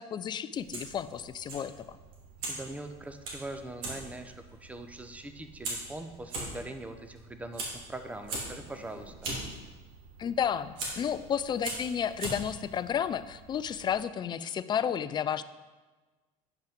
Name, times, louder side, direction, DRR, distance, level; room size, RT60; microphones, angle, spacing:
voice 1, 0.0-2.0 10.2-15.4, left 8 dB, 30° left, 14 dB, 0.4 m, -32 dB
Fire, 0.5-13.9, right 2 dB, 70° right, 2.8 m, -42 dB
voice 2, 2.5-9.3, right 2 dB, 10° right, 8 dB, 0.7 m, -42 dB
9.4 x 5.6 x 5.1 m, 1.3 s
supercardioid pair, 115°, 15 cm